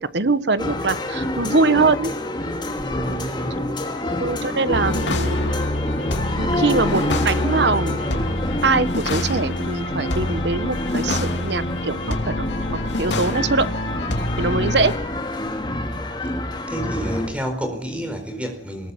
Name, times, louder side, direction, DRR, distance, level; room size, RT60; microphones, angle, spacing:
voice 1, 0.0-2.1 3.8-3.9 4.2-5.5 6.4-8.1 8.6-13.7 14.4-14.9, right 3 dB, 70° right, 14 dB, 1.1 m, -22 dB
sound 1, 0.6-17.3, left 1 dB, 25° left, 2.7 m, -28 dB
voice 2, 2.8-3.6 16.7-18.9, equal, 5° right, 4 dB, 4.7 m, -29 dB
sound 2, 4.7-15.0, left 1 dB, 80° left, 2.8 m, -26 dB
20.5 x 19.5 x 7.3 m, 0.84 s
head